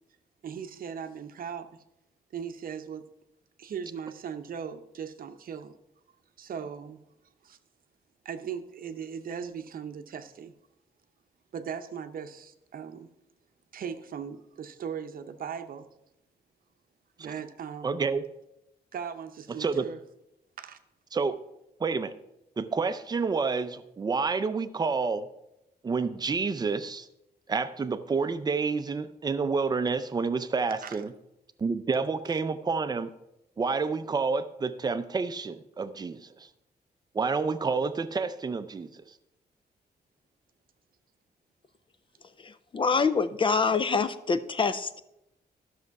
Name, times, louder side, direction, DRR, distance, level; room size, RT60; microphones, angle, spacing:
voice 1, 0.4-1.8 2.3-3.1 3.6-5.7 6.4-7.0 7.4-7.6 8.2-10.5 11.5-13.1 13.7-15.9 17.2-18.0 18.9-20.0 20.6-20.8 30.8-31.0, right 7 dB, 60° right, 8 dB, 0.7 m, -38 dB
voice 2, 17.8-18.2 19.6-19.9 21.1-21.4 21.8-22.1 22.6-25.3 25.8-27.1 27.5-31.1 31.6-33.1 33.6-36.5 37.1-39.0, right 4 dB, 25° right, 10 dB, 0.5 m, -29 dB
voice 3, 42.4-45.0, left 5 dB, 30° left, 12 dB, 0.4 m, -26 dB
12.0 x 6.5 x 4.7 m, 0.87 s
wide cardioid pair, 145°, 17 cm